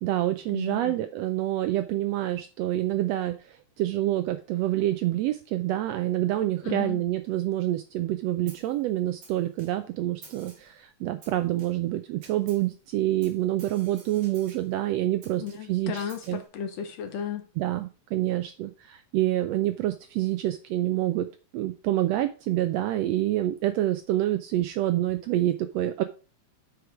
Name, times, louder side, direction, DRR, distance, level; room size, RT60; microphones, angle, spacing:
voice 1, 0.0-15.4 15.7-16.0 16.3-16.4 17.6-21.3 21.5-26.0, right 14 dB, 80° right, 10 dB, 1.5 m, -27 dB
voice 2, 0.5-1.0 6.6-7.0 15.4-17.4, left 9 dB, 70° left, 7 dB, 1.9 m, -34 dB
Snare drum, 8.5-8.8 9.2-9.9 10.2-10.8 11.2-11.9 12.2-12.7 13.2-14.7 15.2-16.5, right 3 dB, 60° right, 3.9 m, -51 dB
8.0 x 4.8 x 4.9 m, 0.35 s
omnidirectional pair, 3.4 m